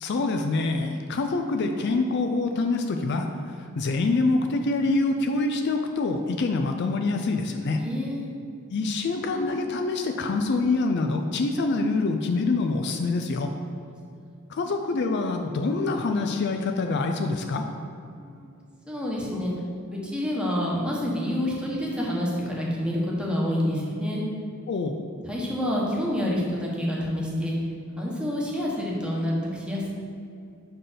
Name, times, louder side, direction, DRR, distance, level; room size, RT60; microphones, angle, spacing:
voice 1, 0.0-3.3 3.8-7.8 8.7-13.5 14.5-17.6 24.7-25.0, left 3 dB, 55° left, 5 dB, 0.4 m, -25 dB
voice 2, 7.8-8.3 18.1-18.5 18.9-19.5 19.9-24.2 25.2-27.6 28.0-29.9, equal, 5° right, -4 dB, 1.1 m, -28 dB
5.7 x 4.5 x 5.0 m, 2.4 s
head